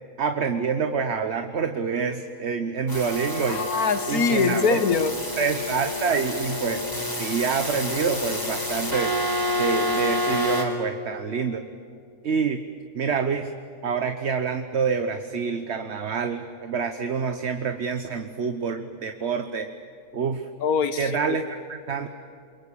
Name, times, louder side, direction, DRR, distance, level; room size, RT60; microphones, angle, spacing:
voice 1, 0.2-3.7 4.1-4.8 5.4-6.8 7.2-9.1 9.6-11.6 12.2-12.6 12.9-13.5 13.8-19.7 20.1-20.5 20.9-22.1, right 5 dB, 50° right, 7 dB, 1.3 m, -27 dB
sound 1, 2.9-10.6, left 1 dB, 15° left, 4.3 m, -28 dB
voice 2, 3.4-5.1 20.6-21.4, left 5 dB, 85° left, 12 dB, 1.7 m, -23 dB
28.5 x 23.0 x 8.6 m, 2.5 s
omnidirectional pair, 1.5 m